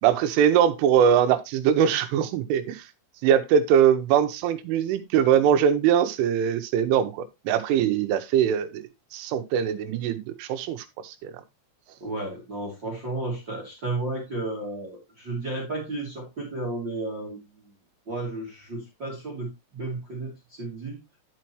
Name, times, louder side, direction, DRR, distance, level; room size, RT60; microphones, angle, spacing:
voice 1, 0.0-2.8 3.2-8.8 9.1-11.3, right 9 dB, 85° right, 3.3 m, -22 dB
voice 2, 12.0-17.4 18.1-21.0, right 2 dB, 30° right, 2.4 m, -33 dB
11.0 x 5.8 x 3.1 m
omnidirectional pair, 5.7 m